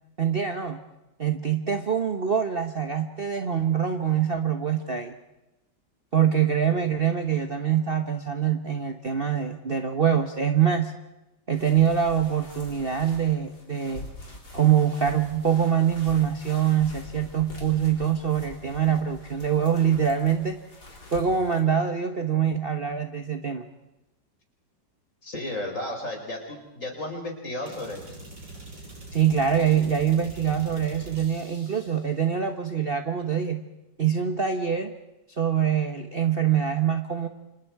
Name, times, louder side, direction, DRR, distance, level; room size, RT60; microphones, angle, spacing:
voice 1, 0.2-0.8 1.2-5.1 6.1-10.9 11.5-14.0 14.5-20.6 21.1-23.7 29.1-33.6 34.0-34.9 35.4-37.3, right 8 dB, 35° right, 5 dB, 1.2 m, -24 dB
sound 1, 11.5-21.6, left 2 dB, 60° left, 4.7 m, -45 dB
voice 2, 25.2-28.0, left 1 dB, 45° left, 2 dB, 5.1 m, -33 dB
sound 2, 27.7-32.1, right 2 dB, 90° right, 7.8 m, -43 dB
29.5 x 26.5 x 4.8 m, 0.96 s
omnidirectional pair, 2.0 m